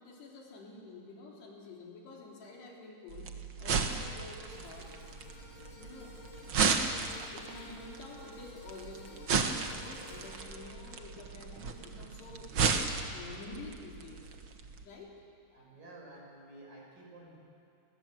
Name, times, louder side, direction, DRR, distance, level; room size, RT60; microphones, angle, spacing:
voice 1, 0.0-3.3 3.6-4.9 5.8-6.1 6.5-6.9 7.3-9.4 9.7-12.6 13.1-14.3 14.8-15.2, left 3 dB, 80° left, -2 dB, 5.8 m, -49 dB
sound 1, 3.1-14.8, right 5 dB, 85° right, 1.1 m, -35 dB
sound 2, 4.3-12.7 13.1-13.3, left 3 dB, 55° left, 5.4 m, -54 dB
voice 2, 15.5-17.4, right 2 dB, 55° right, -2 dB, 8.3 m, -52 dB
29.5 x 23.5 x 7.9 m, 2.5 s
omnidirectional pair, 4.7 m